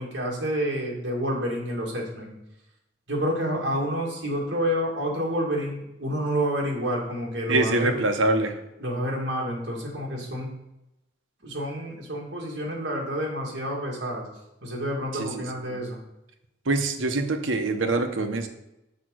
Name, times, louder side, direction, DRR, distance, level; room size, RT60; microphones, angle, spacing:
voice 1, 0.0-2.3 3.1-8.0 8.8-10.5 11.4-14.3 14.6-16.0, equal, 60° right, -2 dB, 2.2 m, -29 dB
voice 2, 7.5-8.5 15.2-15.4 15.7-15.8 16.7-18.5, right 2 dB, 90° right, 6 dB, 1.0 m, -24 dB
6.5 x 5.1 x 6.3 m, 0.90 s
head